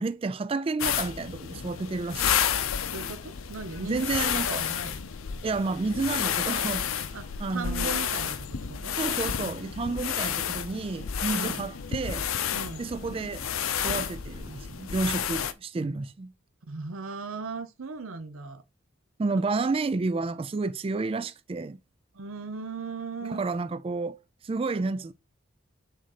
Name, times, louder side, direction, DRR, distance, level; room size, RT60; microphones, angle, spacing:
voice 1, 0.0-2.3 3.8-4.6 5.4-6.9 7.4-7.9 8.9-12.3 12.8-13.4 13.8-16.3 19.2-21.8 23.3-24.2 24.4-25.1, right 3 dB, 25° right, 0.3 m, -30 dB
sound 1, 0.8-15.5, left 8 dB, 80° left, 0.6 m, -31 dB
voice 2, 2.9-5.0 7.1-9.0 11.3-11.6 12.5-12.8 16.7-18.6 19.3-19.4 22.1-23.4, right 4 dB, 85° right, 0.7 m, -38 dB
6.2 x 4.0 x 4.1 m
head